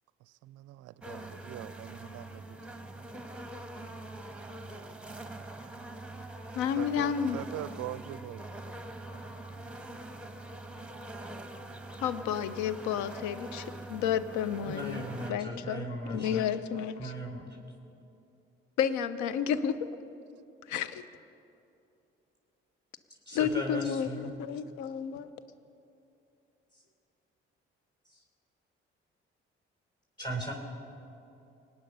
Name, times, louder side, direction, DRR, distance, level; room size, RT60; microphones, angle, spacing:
voice 1, 0.2-2.6 6.8-8.4, right 15 dB, 55° right, 18 dB, 0.5 m, -42 dB
sound 1, 1.0-15.3, right 2 dB, 5° right, 1.4 m, -44 dB
voice 2, 6.5-7.4 12.0-15.0 15.3-17.1 18.8-19.8 20.7-21.0 23.3-25.3, left 8 dB, 70° left, 14 dB, 0.8 m, -31 dB
voice 3, 14.7-16.4 17.0-17.5 23.3-24.3 30.2-30.5, equal, 15° left, -1 dB, 3.7 m, -37 dB
24.5 x 9.4 x 5.6 m, 2.7 s
figure-of-eight pair, 45°, 30 cm